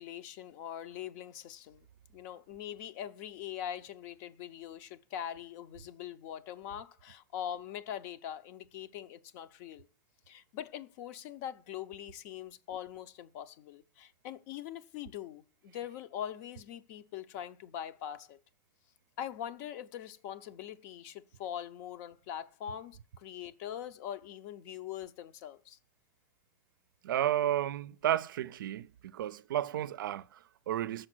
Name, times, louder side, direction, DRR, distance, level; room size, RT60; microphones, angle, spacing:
voice 1, 0.0-1.9 2.1-9.9 10.3-18.4 19.2-25.8, left 10 dB, 55° left, 0.7 m, -42 dB
voice 2, 27.0-31.1, right 11 dB, 90° right, 0.4 m, -32 dB
6.5 x 4.8 x 6.1 m
supercardioid pair, 135°, 11 cm